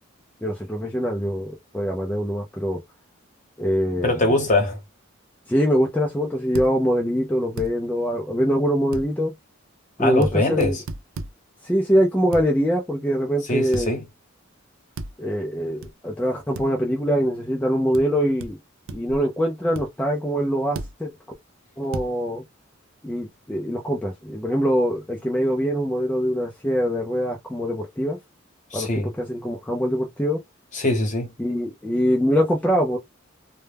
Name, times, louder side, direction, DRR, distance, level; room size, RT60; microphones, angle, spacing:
voice 1, 0.4-2.8 3.6-4.1 5.5-9.3 10.0-10.7 11.6-13.9 15.2-18.6 18.9-21.1 21.8-22.4 23.0-28.2 28.7-28.9 29.2-30.4 31.4-33.0, equal, 5° left, 0.4 m, -23 dB
voice 2, 4.0-4.8 10.0-10.8 13.4-14.0 28.7-29.1 30.7-31.3, left 2 dB, 40° left, 0.9 m, -22 dB
sound 1, 6.5-6.7 7.6-7.7 8.9-9.1 10.2-10.3 10.6-11.3 12.3-12.5 13.7-13.9 15.0-15.1 15.8-15.9 16.5-16.7 17.9-18.0 18.4-18.5 18.9-19.2 19.7-19.9 20.7-20.9 21.9-22.1, right 3 dB, 70° right, 0.4 m, -33 dB
2.2 x 2.1 x 3.3 m
head